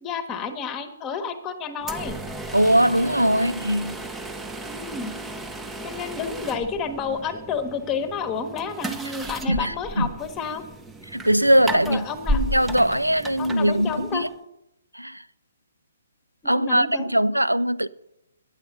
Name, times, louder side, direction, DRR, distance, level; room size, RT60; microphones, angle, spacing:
voice 1, 0.0-2.2 4.7-5.1 5.8-10.6 11.7-12.4 13.4-14.2 16.4-17.1, left 5 dB, 20° left, 1.1 m, -30 dB
sound 1, 1.8-14.4, right 1 dB, 5° right, 0.6 m, -34 dB
voice 2, 2.5-4.0 9.5-10.1 11.0-14.3 14.9-15.2 16.5-17.9, equal, 85° right, 0.4 m, -21 dB
9.8 x 8.3 x 6.5 m
figure-of-eight pair, 130°, 0 cm